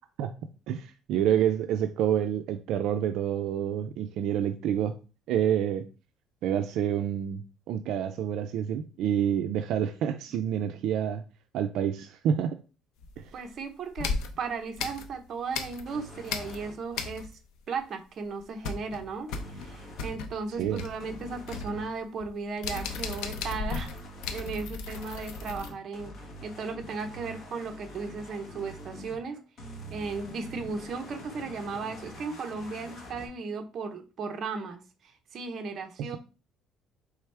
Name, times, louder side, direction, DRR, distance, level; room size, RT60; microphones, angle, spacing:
voice 1, 0.7-4.9 5.3-5.9 6.4-11.2 11.5-12.6 13.2-13.3 20.6-20.9 36.0-36.2, right 9 dB, 65° right, 8 dB, 0.4 m, -28 dB
sound 1, 13.0-13.5 14.0-16.0 16.3-17.6 17.8-17.9 18.3-25.7, left 4 dB, 80° left, 0.6 m, -36 dB
voice 2, 13.3-17.4 17.7-23.9 24.3-26.1 26.4-29.4 29.9-36.2, right 4 dB, 40° right, 5 dB, 0.7 m, -36 dB
sound 2, 15.9-16.7 19.3-20.2 21.0-21.9 22.7-29.2 29.6-33.3, equal, 40° left, 1.2 m, -45 dB
4.7 x 3.4 x 3.3 m, 0.33 s
cardioid pair, 160°, 0 cm